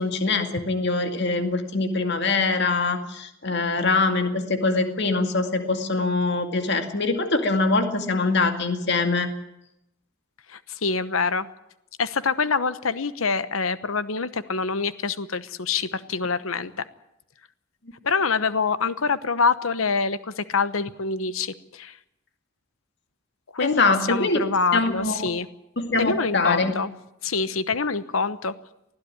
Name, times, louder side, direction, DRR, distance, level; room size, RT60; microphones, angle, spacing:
voice 1, 0.0-9.3 23.6-24.4 24.7-25.3 25.8-26.7, left 3 dB, 55° left, 6 dB, 2.1 m, -23 dB
voice 2, 10.5-11.5 12.0-16.9 18.0-22.0 23.5-23.8 24.1-25.5 26.0-26.9 27.2-28.5, left 4 dB, 85° left, 14 dB, 1.0 m, -25 dB
20.0 x 14.0 x 9.9 m, 0.82 s
head